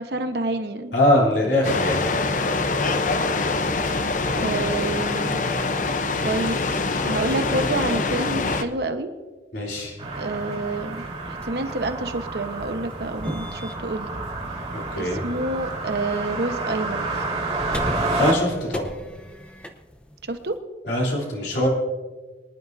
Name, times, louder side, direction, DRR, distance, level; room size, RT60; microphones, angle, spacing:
voice 1, 0.0-0.9 4.4-5.5 6.2-6.7 7.0-9.1 10.1-14.1 15.0-17.1 20.2-20.5, right 2 dB, 65° right, 7 dB, 1.0 m, -28 dB
voice 2, 0.9-2.0 9.5-9.9 14.7-15.2 18.2-18.9 20.8-21.7, left 1 dB, 75° left, -3 dB, 3.3 m, -22 dB
sound 1, 1.6-8.6, left 3 dB, 45° left, 0.7 m, -24 dB
sound 2, 10.0-18.3, right 2 dB, 35° right, 2.1 m, -30 dB
sound 3, 10.6-20.6, equal, 5° left, 0.8 m, -39 dB
24.0 x 11.0 x 2.6 m, 1.3 s
head